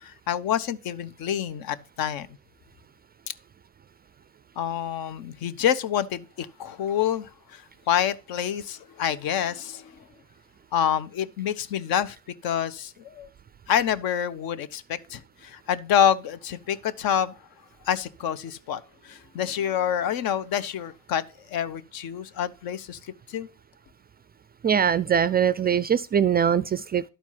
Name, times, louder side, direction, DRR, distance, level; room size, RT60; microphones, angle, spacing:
voice 1, 0.0-2.3 4.6-7.6 7.9-9.9 10.7-12.2 12.4-13.3 13.7-17.3 17.9-23.0 23.3-23.5, left 9 dB, 60° left, 0.9 m, -27 dB
voice 2, 24.6-27.1, right 8 dB, 25° right, 0.3 m, -22 dB
11.5 x 4.4 x 5.7 m
hypercardioid pair, 65°, 41 cm